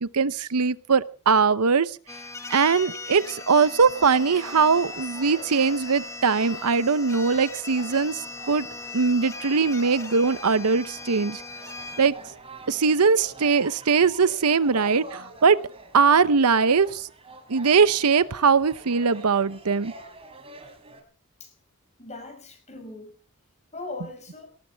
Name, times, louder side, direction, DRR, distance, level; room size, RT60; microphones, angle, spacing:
voice 1, 0.0-1.9 2.5-8.2 8.5-8.7 8.9-11.4 12.0-12.2 12.7-15.6 15.9-17.1 17.5-19.9, right 5 dB, 85° right, 15 dB, 0.8 m, -21 dB
sound 1, 2.1-12.1, left 3 dB, 15° left, 1.7 m, -39 dB
sound 2, 3.9-21.0, right 2 dB, 25° right, 3.7 m, -46 dB
voice 2, 22.0-23.1 23.7-24.5, left 2 dB, 30° left, 5 dB, 5.7 m, -39 dB
19.5 x 18.5 x 3.5 m, 0.38 s
head